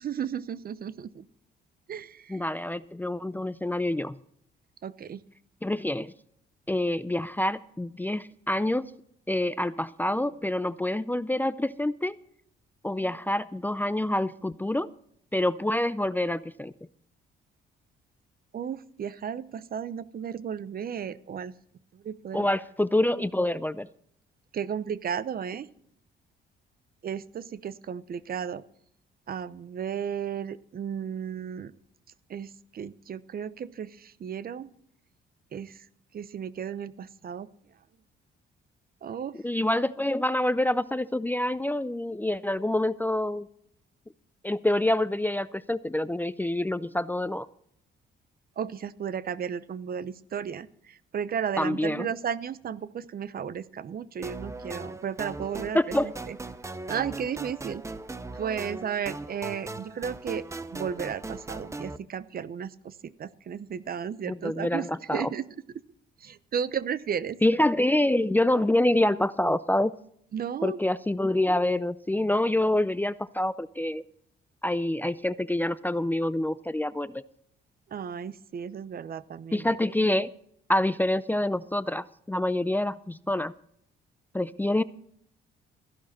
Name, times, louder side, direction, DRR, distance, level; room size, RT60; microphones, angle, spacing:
voice 1, 0.0-1.2 1.9-2.4 4.8-5.2 18.5-21.5 21.9-22.5 24.5-25.7 27.0-28.6 29.3-31.7 32.3-34.7 35.5-35.9 36.1-37.5 39.0-39.4 48.6-56.4 56.9-57.8 58.3-65.5 66.2-67.4 70.3-70.8 77.9-79.8, right 8 dB, 50° right, 17 dB, 0.8 m, -34 dB
voice 2, 2.3-4.2 5.6-6.1 6.7-8.9 9.3-12.2 12.8-14.9 15.3-16.7 22.3-23.9 39.4-43.5 44.4-47.5 51.6-52.1 55.7-56.1 64.2-65.3 67.4-69.9 70.6-74.0 74.6-77.2 79.5-80.3 80.7-83.5 84.3-84.8, left 1 dB, 10° left, 15 dB, 0.4 m, -26 dB
sound 1, 54.2-62.0, right 2 dB, 15° right, 0.8 m, -39 dB
14.5 x 11.5 x 4.3 m, 0.68 s
cardioid pair, 90°, 20 cm